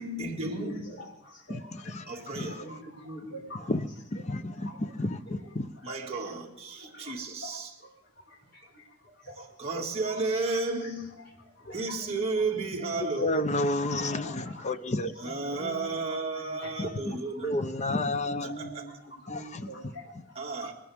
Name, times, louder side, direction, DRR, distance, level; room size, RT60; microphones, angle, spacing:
voice 1, 0.0-0.9 2.1-2.7 5.8-7.7 9.4-11.2 11.7-13.4 15.2-17.5 18.4-19.0 20.3-20.7, right 3 dB, 30° right, 2.2 m, -33 dB
voice 2, 0.6-2.2 2.6-3.7 4.6-4.8 5.3-5.4 5.8-6.0 6.8-7.1 7.4-7.5 7.8-7.9 8.3-9.9 11.6-11.8 14.0-14.7 15.2-16.7 18.2-20.6, equal, 55° left, 5.5 m, -45 dB
voice 3, 1.5-2.0 2.3-2.5 3.7-5.7 13.0-15.1 16.8-17.2 17.4-18.5 19.3-19.7, left 2 dB, 35° left, 0.8 m, -31 dB
21.5 x 18.5 x 3.6 m
head